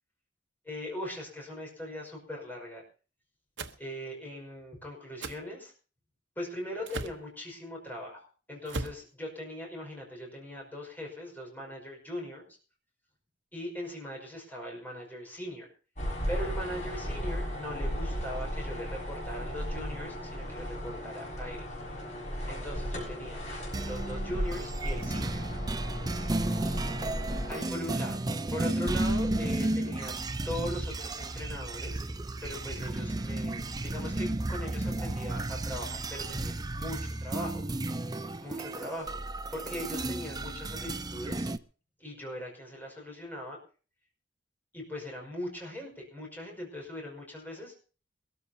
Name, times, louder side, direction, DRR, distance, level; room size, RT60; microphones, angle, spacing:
voice 1, 0.6-2.8 3.8-5.7 6.4-12.6 13.5-15.7 16.3-21.7 22.5-23.4 23.8-25.5 27.5-30.2 30.4-32.1 32.4-37.6 38.4-39.2 39.5-41.5 42.0-43.6 44.7-47.7, left 1 dB, 10° left, -1 dB, 5.4 m, -40 dB
sound 1, 3.6-3.8 5.2-5.4 6.9-7.2 8.7-9.0, right 3 dB, 70° right, 1.0 m, -36 dB
sound 2, 16.0-27.6, equal, 40° left, 6.2 m, -35 dB
sound 3, 23.7-41.6, right 2 dB, 20° right, 0.6 m, -33 dB
22.5 x 14.0 x 2.8 m, 0.37 s
head